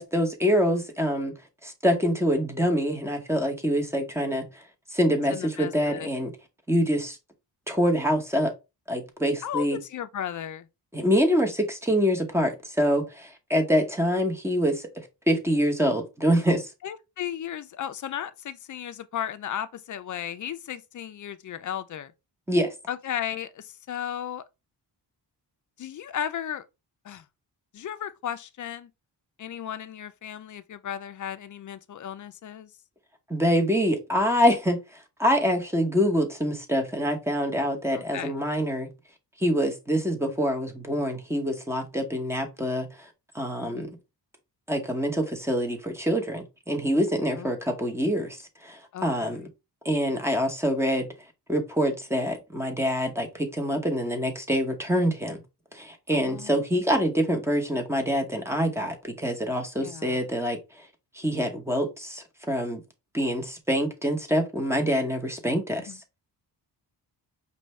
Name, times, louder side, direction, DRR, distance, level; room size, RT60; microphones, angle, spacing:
voice 1, 0.0-1.3 1.6-4.5 4.9-6.3 6.7-7.2 7.7-8.5 8.9-9.8 10.9-14.8 15.3-16.7 22.5-22.7 33.3-34.8 35.2-38.9 39.4-42.9 43.3-43.9 44.7-48.4 48.6-49.5 49.8-51.1 51.5-55.4 55.7-60.8 61.1-62.8 63.1-65.9, equal, 5° right, 0.8 m, -25 dB
voice 2, 5.3-6.1 9.4-10.7 16.8-22.1 22.9-24.4 25.8-26.6 27.0-27.2 27.7-28.9 29.4-32.7 37.9-38.3 43.6-44.0 47.3-47.5 48.9-49.5 56.1-56.6 59.8-60.2 65.8-66.0, left 9 dB, 50° left, 0.5 m, -35 dB
5.4 x 2.6 x 3.2 m
wide cardioid pair, 150°, 41 cm